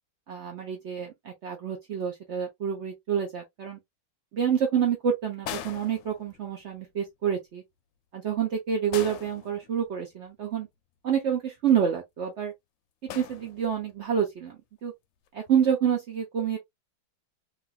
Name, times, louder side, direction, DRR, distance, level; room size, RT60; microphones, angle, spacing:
voice 1, 0.3-3.8 4.3-7.6 8.1-10.7 11.0-12.5 13.1-14.6 14.8-14.9 15.3-16.6, right 8 dB, 80° right, 0.6 m, -28 dB
sound 1, 5.4-6.7 8.9-10.1 13.1-14.0 15.3-15.5, left 10 dB, 75° left, 1.2 m, -41 dB
3.4 x 2.5 x 2.3 m
omnidirectional pair, 2.2 m